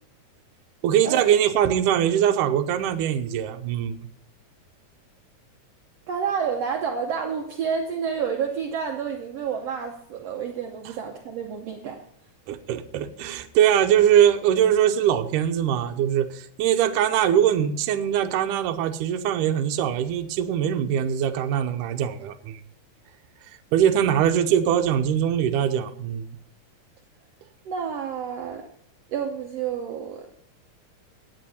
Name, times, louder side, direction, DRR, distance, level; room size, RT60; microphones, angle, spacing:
voice 1, 0.8-4.0 12.5-22.6 23.7-26.3, right 10 dB, 85° right, 7 dB, 2.3 m, -22 dB
voice 2, 6.1-12.0 27.7-28.6 29.1-30.3, right 7 dB, 65° right, 3 dB, 1.7 m, -29 dB
16.5 x 9.4 x 4.2 m, 0.66 s
omnidirectional pair, 3.7 m